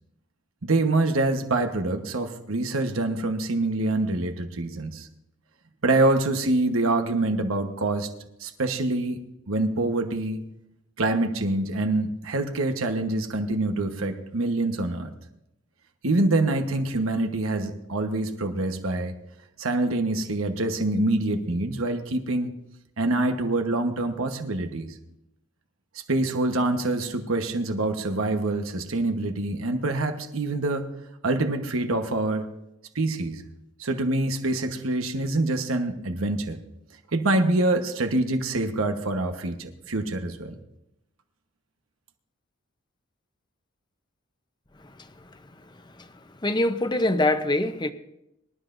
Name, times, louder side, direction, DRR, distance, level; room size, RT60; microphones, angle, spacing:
voice 1, 0.6-5.1 5.8-8.1 8.4-9.2 9.5-10.4 11.0-15.1 16.0-19.1 19.6-22.5 23.0-24.9 26.1-30.9 31.2-32.5 32.9-33.4 33.8-36.6 37.1-40.6, right 2 dB, 85° right, 1.2 m, -25 dB
voice 2, 46.4-47.9, left 1 dB, 20° left, 0.7 m, -23 dB
25.0 x 12.5 x 2.6 m
head